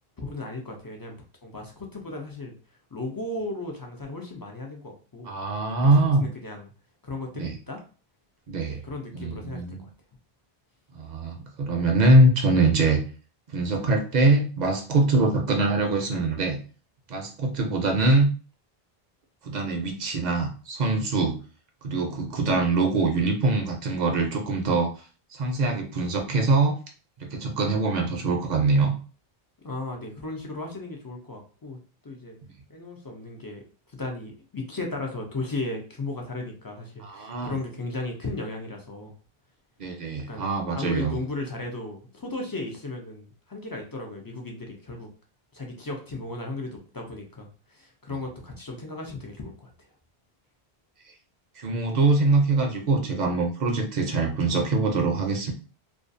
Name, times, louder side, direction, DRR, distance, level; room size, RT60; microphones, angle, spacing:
voice 1, 0.2-1.2 1.4-2.6 2.9-5.3 5.8-6.7 7.0-7.8 8.7-9.9 29.6-31.8 32.0-32.4 32.7-33.6 33.9-39.1 40.3-45.1 45.5-49.7, left 2 dB, 40° left, 1 dB, 0.3 m, -35 dB
voice 2, 5.3-6.3 7.4-7.6 8.5-8.8 9.1-9.8 10.9-13.0 13.5-16.6 17.1-18.3 19.4-21.4 21.8-24.9 25.3-26.8 27.2-29.0 37.0-37.5 39.8-41.2 51.6-55.5, right 2 dB, 55° right, 3 dB, 0.5 m, -23 dB
2.4 x 2.3 x 2.5 m, 0.37 s
omnidirectional pair, 1.0 m